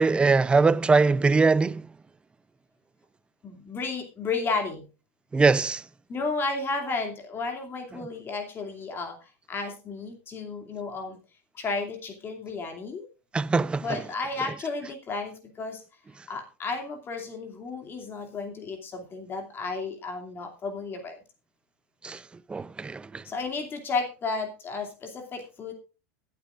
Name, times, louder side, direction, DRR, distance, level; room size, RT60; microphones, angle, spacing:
voice 1, 0.0-1.9 5.3-5.8 7.9-8.1 13.3-14.1 14.4-14.6 22.0-22.2 22.5-23.2, right 4 dB, 15° right, 0.5 m, -22 dB
voice 2, 3.4-4.9 6.1-11.2 11.5-13.1 13.8-15.8 16.3-21.2 23.2-25.7, left 4 dB, 30° left, 2.6 m, -33 dB
22.0 x 8.4 x 2.5 m
supercardioid pair, 130°, 8 cm